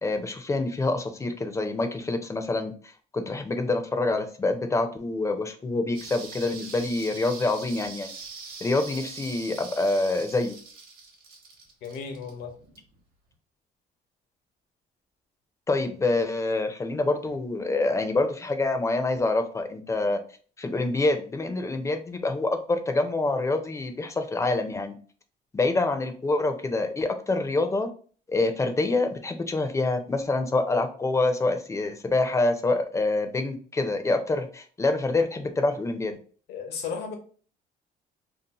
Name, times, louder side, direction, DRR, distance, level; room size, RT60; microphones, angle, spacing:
voice 1, 0.0-8.1 8.6-10.6 15.7-20.2 20.6-24.9 25.5-27.9 28.3-36.2, left 2 dB, 15° left, 7 dB, 0.4 m, -26 dB
sound 1, 5.9-13.0 13.3-13.4, right 4 dB, 60° right, 0.9 m, -43 dB
voice 2, 11.8-12.5 36.5-37.1, left 6 dB, 80° left, 4 dB, 0.7 m, -34 dB
2.6 x 2.0 x 2.9 m, 0.42 s
cardioid pair, 110°, 17 cm